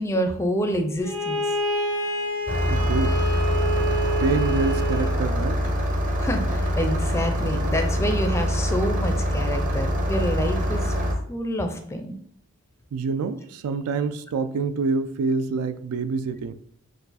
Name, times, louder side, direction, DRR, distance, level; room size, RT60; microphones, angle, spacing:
voice 1, 0.0-1.4 6.2-10.9 11.3-12.2, equal, 10° left, 6 dB, 0.4 m, -27 dB
Bowed string instrument, 1.0-5.2, equal, 65° right, 1.1 m, -27 dB
Engine starting, 2.5-11.1, equal, 35° right, 0.7 m, -24 dB
voice 2, 2.7-3.2 4.2-5.6 12.9-16.5, right 4 dB, 85° right, 12 dB, 0.4 m, -26 dB
4.5 x 2.4 x 4.0 m, 0.64 s
head